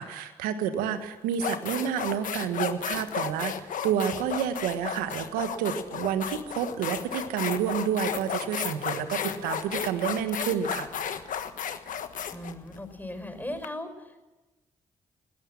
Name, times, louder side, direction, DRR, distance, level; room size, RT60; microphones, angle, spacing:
voice 1, 0.0-3.5 3.8-10.9, right 8 dB, 85° right, 9 dB, 1.4 m, -29 dB
sound 1, 0.7-0.9 1.3-13.7, left 8 dB, 65° left, 1.4 m, -33 dB
voice 2, 12.3-13.9, left 1 dB, 10° left, 8 dB, 5.8 m, -37 dB
21.0 x 17.0 x 7.4 m, 1.1 s
hypercardioid pair, 40°, 15 cm